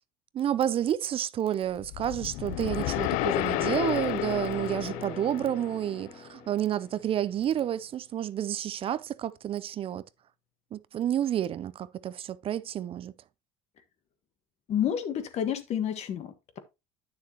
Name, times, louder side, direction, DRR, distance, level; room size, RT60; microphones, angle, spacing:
voice 1, 0.3-10.1 10.7-13.1, right 10 dB, 45° right, 0.5 m, -30 dB
sound 1, 1.8-6.1, left 16 dB, 75° left, 0.5 m, -31 dB
sound 2, 3.6-8.0, left 3 dB, 20° left, 3.1 m, -43 dB
voice 2, 14.7-16.6, left 9 dB, 55° left, 1.5 m, -30 dB
9.7 x 6.6 x 2.9 m
supercardioid pair, 95°, 13 cm